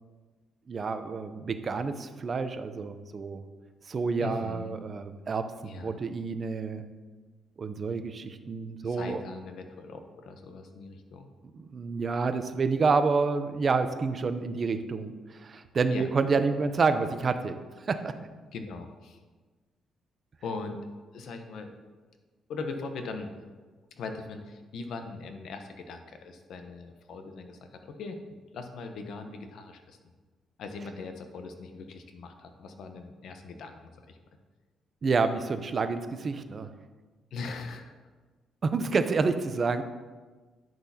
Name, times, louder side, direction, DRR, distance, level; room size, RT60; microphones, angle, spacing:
voice 1, 0.7-3.4 3.9-5.5 5.8-6.8 7.6-9.2 11.5-17.6 17.9-18.2 35.0-36.7 38.6-39.8, right 4 dB, 40° right, 9 dB, 0.6 m, -28 dB
voice 2, 4.2-4.7 5.6-5.9 8.8-11.3 15.9-16.0 18.5-19.2 20.4-20.8 21.1-21.7 22.5-23.3 24.0-30.0 30.6-34.2 37.3-37.9, left 4 dB, 70° left, 6 dB, 0.9 m, -40 dB
10.5 x 6.0 x 2.8 m, 1.3 s
cardioid pair, 90°, 0 cm